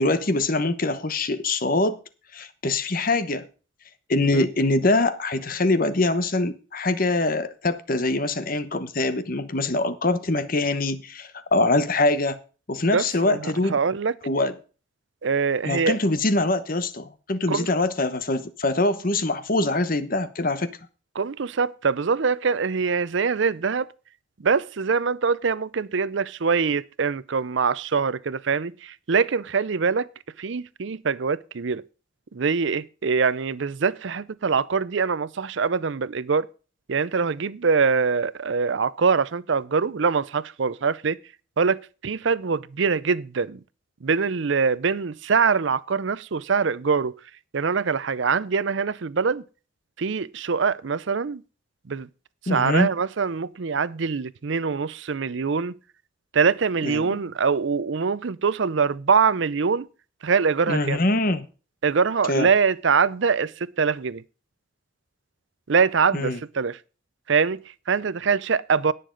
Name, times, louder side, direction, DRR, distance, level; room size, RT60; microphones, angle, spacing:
voice 1, 0.0-2.0 2.3-3.5 4.1-12.4 12.7-13.8 14.2-14.5 15.6-20.8 52.5-52.9 56.8-57.1 60.7-61.5 62.3-62.5 66.1-66.4, left 2 dB, 45° left, 1.0 m, -23 dB
voice 2, 12.9-14.1 15.2-16.0 17.5-17.7 21.1-23.9 24.4-30.1 30.4-31.8 32.3-36.5 36.9-41.2 41.6-43.6 44.0-47.1 47.5-49.4 50.0-51.4 51.9-52.1 52.4-55.7 56.3-59.9 60.2-61.0 61.8-64.2 65.7-66.8 67.3-68.9, right 5 dB, 65° right, 0.5 m, -23 dB
17.5 x 6.8 x 3.9 m
head